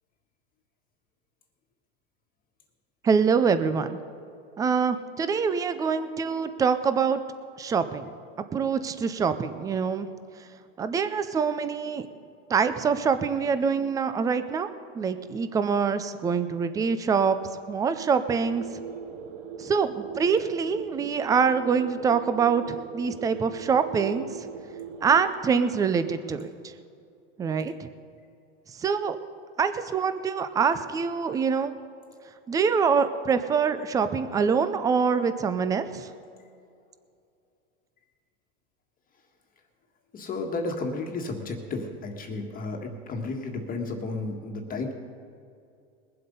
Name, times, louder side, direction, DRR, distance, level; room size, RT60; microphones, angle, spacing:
voice 1, 3.0-4.0 4.6-7.2 7.6-8.1 8.5-10.1 10.8-12.1 12.5-14.7 14.9-17.4 17.7-18.6 19.6-24.3 25.0-26.5 27.4-27.9 28.8-29.2 29.6-31.7 32.5-36.1, right 6 dB, 10° right, 11 dB, 0.4 m, -25 dB
sound 1, 18.3-25.3, right 7 dB, 80° right, 1.1 m, -40 dB
voice 2, 40.1-44.9, left 3 dB, 20° left, 2 dB, 1.6 m, -32 dB
21.0 x 7.8 x 5.3 m, 2.5 s
supercardioid pair, 130°, 37 cm